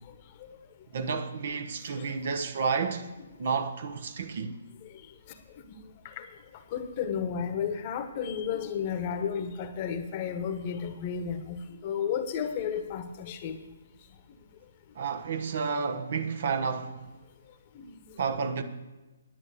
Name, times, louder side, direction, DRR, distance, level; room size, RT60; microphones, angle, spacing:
voice 1, 0.9-3.1 3.4-4.5 15.0-17.0 18.2-18.6, right 5 dB, 50° right, 1.1 m, -31 dB
voice 2, 6.5-13.6 17.7-18.0, left 7 dB, 35° left, 1.2 m, -33 dB
10.5 x 9.6 x 6.8 m
figure-of-eight pair, 130°, 0 cm